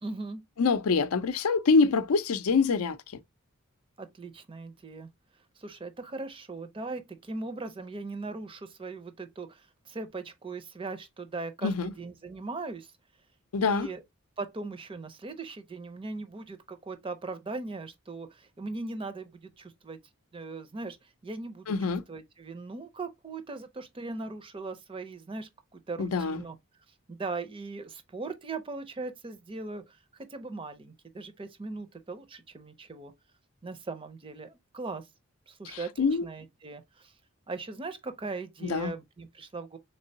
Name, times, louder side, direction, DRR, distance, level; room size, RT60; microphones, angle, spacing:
voice 1, 0.0-0.4 4.0-5.1 5.6-12.9 13.6-14.0 14.4-20.0 20.3-21.8 22.1-26.6 27.1-30.0 30.3-33.1 33.6-35.1 35.5-37.1 37.5-39.8, right 3 dB, 25° right, 0.5 m, -39 dB
voice 2, 0.6-3.0 11.6-11.9 13.5-13.9 21.7-22.0 26.0-26.4 35.7-36.3 38.6-38.9, left 4 dB, 85° left, 0.5 m, -25 dB
3.7 x 3.2 x 2.6 m
head